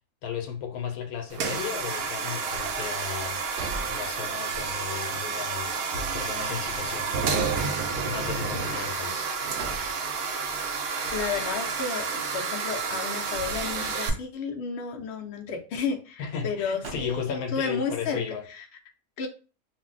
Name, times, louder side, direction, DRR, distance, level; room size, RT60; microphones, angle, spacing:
voice 1, 0.2-3.4 3.9-7.4 8.0-9.3 16.2-18.4, left 8 dB, 85° left, 1.1 m, -35 dB
sound 1, 1.3-14.1, right 5 dB, 90° right, 1.1 m, -30 dB
sound 2, 3.2-4.8 5.2-5.3 9.1-10.4 16.4-17.7, right 3 dB, 65° right, 0.7 m, -41 dB
voice 2, 10.8-18.2 18.5-18.7 19.2-19.3, left 5 dB, 65° left, 0.7 m, -32 dB
2.6 x 2.0 x 3.8 m
omnidirectional pair, 1.5 m